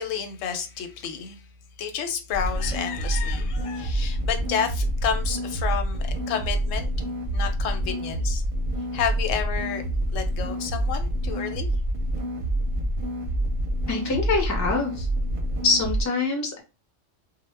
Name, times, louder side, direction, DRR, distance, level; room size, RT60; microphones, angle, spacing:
voice 1, 0.0-1.4 1.8-6.9 7.3-8.4 8.9-9.8 10.1-11.7, left 7 dB, 90° left, 0.9 m, -30 dB
sound 1, 2.3-16.0, right 1 dB, 55° right, 0.6 m, -27 dB
voice 2, 13.9-15.1 15.6-16.6, left 3 dB, 25° left, 0.4 m, -24 dB
2.1 x 2.0 x 3.2 m
omnidirectional pair, 1.3 m